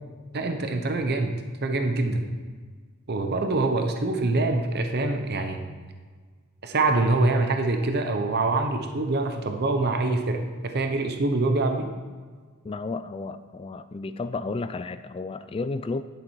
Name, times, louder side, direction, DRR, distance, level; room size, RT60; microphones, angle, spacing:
voice 1, 0.3-1.3 1.6-2.2 3.1-5.6 6.6-11.9, right 2 dB, 45° right, 5 dB, 0.8 m, -25 dB
voice 2, 12.6-16.0, left 3 dB, 25° left, 11 dB, 0.3 m, -32 dB
10.5 x 7.6 x 4.7 m, 1.5 s
head